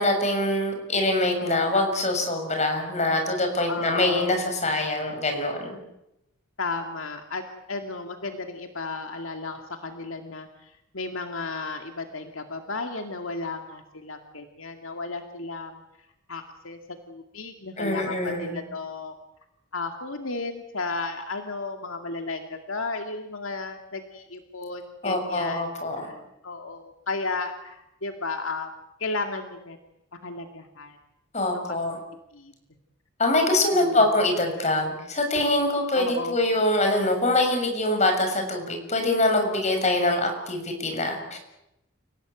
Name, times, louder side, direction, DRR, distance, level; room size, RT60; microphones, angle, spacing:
voice 1, 0.0-5.8 17.8-18.6 25.0-26.1 31.3-32.0 33.2-41.4, left 2 dB, 35° left, 4 dB, 6.7 m, -24 dB
voice 2, 3.7-4.4 6.6-7.4 7.7-15.8 16.3-16.8 17.1-19.1 19.7-25.7 26.0-26.2 26.4-28.7 29.0-29.8 30.2-31.0 32.3-32.5 33.7-34.1 35.9-36.5, left 3 dB, 75° left, 5 dB, 2.3 m, -34 dB
29.5 x 17.5 x 9.2 m, 0.85 s
head